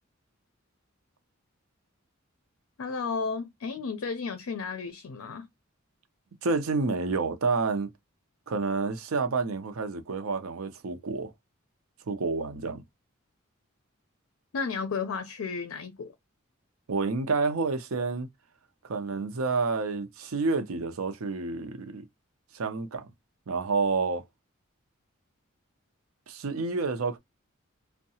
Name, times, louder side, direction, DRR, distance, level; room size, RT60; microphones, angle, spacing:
voice 1, 2.8-5.5 14.5-16.1, left 5 dB, 80° left, 0.4 m, -33 dB
voice 2, 6.4-7.9 8.5-11.3 12.1-12.8 16.9-18.3 18.8-22.0 22.5-23.1 23.5-24.2 26.3-27.2, right 4 dB, 80° right, 0.6 m, -29 dB
2.7 x 2.2 x 2.7 m
head